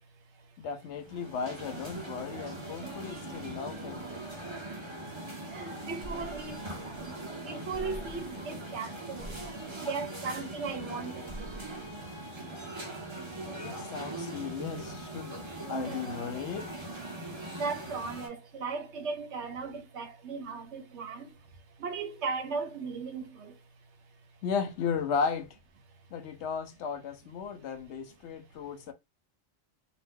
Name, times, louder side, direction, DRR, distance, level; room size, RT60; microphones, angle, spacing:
voice 1, 0.6-4.1 13.6-15.4 15.7-16.7 17.4-17.6 24.4-25.6 26.1-28.9, left 6 dB, 75° left, 0.9 m, -35 dB
sound 1, 0.9-18.3, right 2 dB, 25° right, 0.8 m, -41 dB
voice 2, 5.5-6.6 7.0-9.4 9.8-11.5 17.6-21.3 21.8-23.5, right 4 dB, 75° right, 1.0 m, -37 dB
sound 2, 6.0-6.7 6.9-7.1 7.7-8.3 9.2-9.5 10.3-10.9 11.2-11.9, equal, 10° left, 1.1 m, -44 dB
2.8 x 2.2 x 3.5 m
omnidirectional pair, 1.2 m